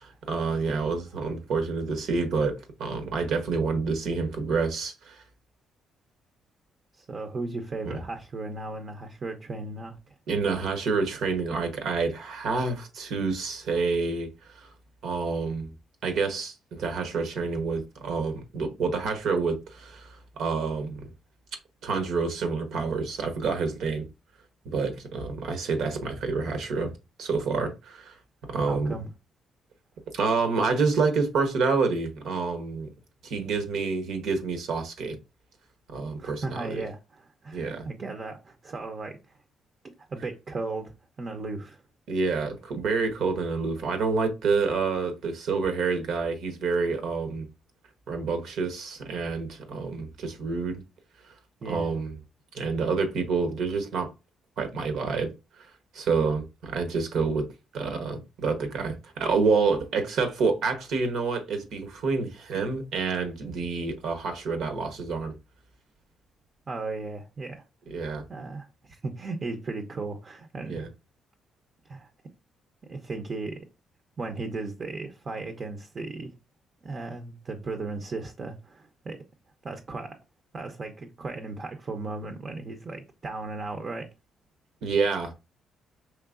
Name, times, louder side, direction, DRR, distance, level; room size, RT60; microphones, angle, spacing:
voice 1, 0.0-5.2 10.3-14.7 15.0-15.7 16.0-21.1 21.8-24.1 24.6-26.9 27.2-28.2 28.5-28.9 30.1-32.9 33.2-35.2 35.9-36.8 37.5-37.8 42.1-47.5 48.1-50.8 51.6-52.2 52.5-54.1 54.6-55.3 55.6-55.7 55.9-57.5 57.7-65.3 67.9-68.2 70.7-70.9 84.8-85.3, right 4 dB, 75° right, 0.9 m, -28 dB
voice 2, 6.9-10.1 28.7-29.1 36.2-39.2 39.8-41.8 51.6-51.9 66.7-67.6 68.3-70.9 71.9-72.1 72.9-73.6 74.2-76.3 76.8-79.2 79.6-80.2 80.5-84.1, right 3 dB, 40° right, 0.6 m, -36 dB
4.6 x 3.2 x 2.4 m
cardioid pair, 90°, 0 cm